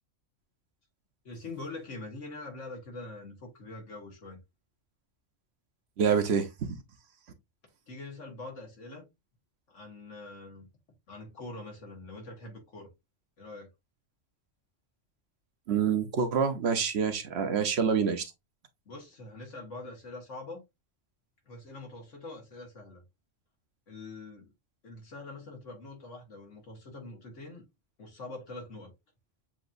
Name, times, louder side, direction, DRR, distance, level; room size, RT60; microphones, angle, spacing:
voice 1, 1.2-4.4 7.9-9.1 9.7-10.7 11.1-12.9 13.4-13.7 18.9-20.6 21.5-23.0 23.9-24.5 24.8-27.6 28.0-28.9, left 2 dB, 85° left, 2.1 m, -44 dB
voice 2, 6.0-6.8 15.7-18.3, right 6 dB, 65° right, 1.0 m, -27 dB
7.0 x 2.9 x 2.5 m
omnidirectional pair, 1.2 m